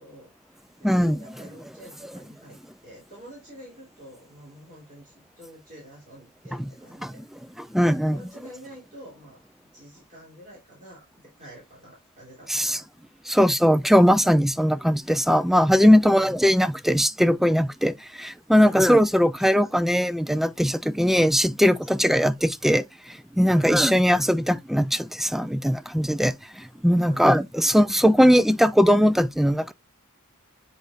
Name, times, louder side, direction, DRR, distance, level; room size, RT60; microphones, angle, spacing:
voice 1, 0.0-7.2 8.0-12.9 16.0-16.4 18.5-18.9 19.4-19.5 23.5-23.9 27.0-27.3, equal, 40° right, 3.8 m, -47 dB
voice 2, 0.8-1.2 7.0-7.1 7.7-8.2 12.5-12.8 13.3-29.7, equal, ahead, 0.4 m, -20 dB
8.4 x 5.1 x 2.5 m
head